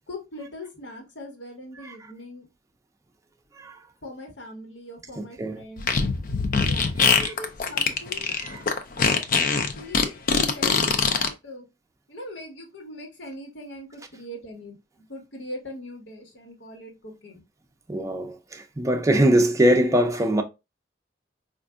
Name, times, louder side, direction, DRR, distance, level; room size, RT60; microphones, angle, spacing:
voice 1, 0.1-2.5 4.0-5.9 6.7-8.3 9.1-10.2 10.5-11.7 12.1-14.8 15.1-17.4, left 1 dB, 90° left, 1.3 m, -41 dB
voice 2, 5.2-5.6 7.0-7.3 8.4-8.6 17.9-20.4, right 1 dB, 20° right, 0.5 m, -22 dB
Fart, 5.8-11.3, left 5 dB, 50° left, 0.5 m, -22 dB
4.5 x 2.5 x 2.4 m
head